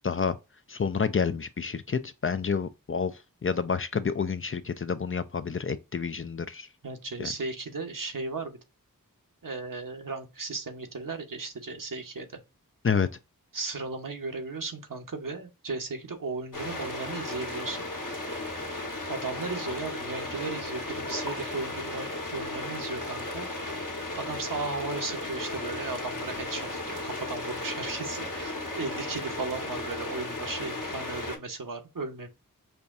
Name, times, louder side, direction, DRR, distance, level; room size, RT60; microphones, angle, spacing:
voice 1, 0.0-0.4 0.7-3.1 3.4-6.7 7.2-7.3 12.8-13.1, left 6 dB, 40° left, 0.4 m, -29 dB
voice 2, 6.8-8.6 9.4-12.4 13.5-17.8 19.1-23.5 24.2-32.3, right 3 dB, 65° right, 1.0 m, -36 dB
sound 1, 16.5-31.4, left 2 dB, 65° left, 1.3 m, -35 dB
5.5 x 2.3 x 2.5 m
wide cardioid pair, 40°, 34 cm